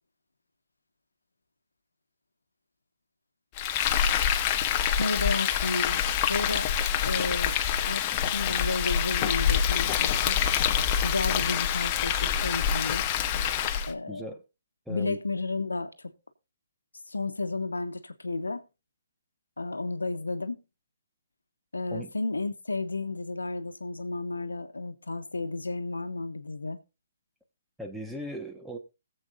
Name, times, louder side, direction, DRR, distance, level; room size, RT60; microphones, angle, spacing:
Frying (food), 3.6-13.9, left 9 dB, 30° left, 1.0 m, -26 dB
voice 1, 5.0-6.0 6.3-6.7 7.0-7.5 7.9-10.4 11.0-13.1 13.9-14.3 14.9-16.1 17.1-18.6 19.6-20.6 21.7-26.8, left 3 dB, 90° left, 1.2 m, -32 dB
voice 2, 14.1-14.4 14.9-15.2 21.9-22.1 27.8-28.8, equal, ahead, 1.3 m, -38 dB
20.5 x 7.7 x 2.5 m
figure-of-eight pair, 140°, 0 cm